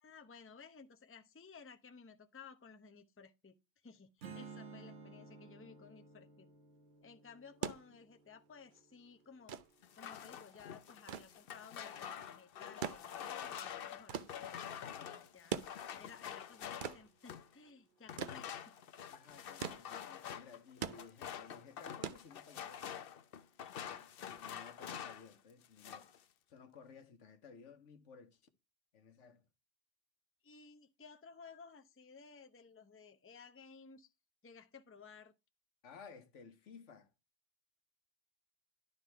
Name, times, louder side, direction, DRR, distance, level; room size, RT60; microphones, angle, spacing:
voice 1, 0.0-3.6 3.8-6.5 7.0-9.6 10.0-15.6 16.0-18.8 30.4-34.1 34.4-35.3, left 5 dB, 15° left, 0.6 m, -57 dB
Strum, 4.2-9.5, right 4 dB, 80° right, 1.5 m, -55 dB
sound 1, 7.4-22.9 24.1-24.2, right 7 dB, 55° right, 0.7 m, -46 dB
sound 2, 9.8-17.5 18.1-25.3 25.6-26.2, left 9 dB, 60° left, 0.8 m, -47 dB
voice 2, 19.1-23.0 23.6-26.1 26.5-28.4 28.9-29.5 35.8-37.1, left 5 dB, 85° left, 1.4 m, -57 dB
11.5 x 4.0 x 4.5 m
omnidirectional pair, 1.2 m